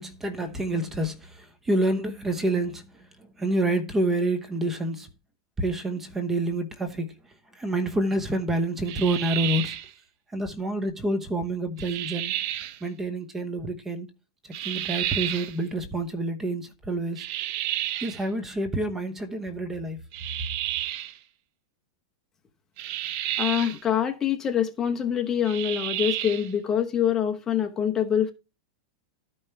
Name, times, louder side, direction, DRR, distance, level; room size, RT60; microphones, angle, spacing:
voice 1, 0.0-5.1 5.6-9.8 10.3-12.4 12.8-14.1 14.4-17.3 18.0-20.0, right 1 dB, 10° right, 1.0 m, -28 dB
sound 1, 8.9-9.9 11.8-12.8 14.5-15.6 17.2-18.2 20.1-21.2 22.8-23.8 25.4-26.5, right 13 dB, 45° right, 0.8 m, -31 dB
voice 2, 23.4-28.3, left 9 dB, 15° left, 0.9 m, -25 dB
12.5 x 5.5 x 4.6 m
supercardioid pair, 160°, 2 cm